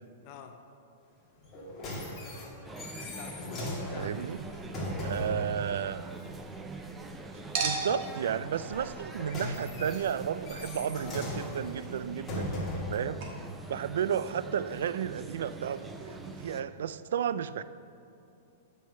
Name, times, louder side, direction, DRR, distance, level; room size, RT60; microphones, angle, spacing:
voice 1, 0.2-0.6 3.0-4.3 13.0-13.5 16.4-16.6, left 6 dB, 40° left, 6 dB, 0.6 m, -47 dB
sound 1, 1.4-5.5 8.8-13.0 13.8-13.9, left 1 dB, 20° left, 1.9 m, -38 dB
sound 2, 2.6-16.6, right 3 dB, 10° right, 0.5 m, -44 dB
voice 2, 4.0-4.4 5.0-6.1 7.6-13.2 13.7-17.6, right 8 dB, 80° right, 15 dB, 0.3 m, -33 dB
Chink clink, 4.2-7.1 7.5-12.9 13.2-13.3, right 4 dB, 50° right, 1.3 m, -41 dB
7.7 x 5.4 x 6.7 m, 2.6 s
supercardioid pair, 160°, 0 cm